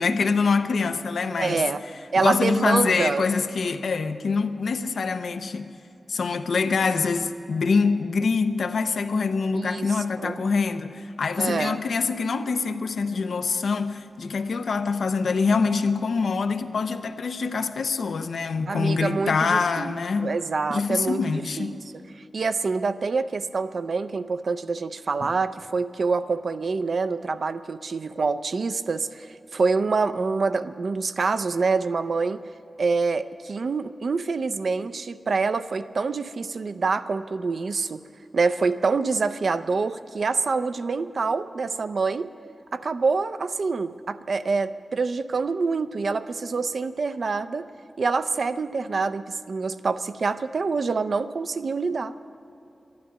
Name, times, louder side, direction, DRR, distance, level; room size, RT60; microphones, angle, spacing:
voice 1, 0.0-1.6 2.2-5.7 6.1-20.3 20.7-21.8, left 4 dB, 85° left, 0.7 m, -25 dB
voice 2, 1.4-1.8 2.1-3.3 9.5-10.4 11.4-11.8 18.7-21.2 21.6-21.8 22.1-32.4 32.8-38.0 38.3-42.3 42.7-47.7 48.0-52.1, right 4 dB, 60° right, 0.5 m, -26 dB
12.5 x 11.5 x 9.7 m
wide cardioid pair, 145°, 0 cm